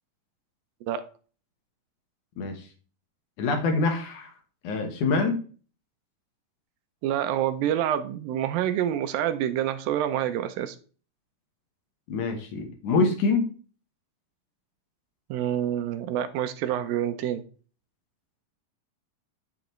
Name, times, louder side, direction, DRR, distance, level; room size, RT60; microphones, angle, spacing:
voice 1, 3.4-4.3 4.6-5.4 12.1-13.5, left 3 dB, 65° left, 5 dB, 2.6 m, -25 dB
voice 2, 7.0-10.8 15.3-17.4, right 11 dB, 80° right, 10 dB, 2.5 m, -27 dB
10.5 x 7.0 x 3.2 m, 0.39 s
omnidirectional pair, 4.1 m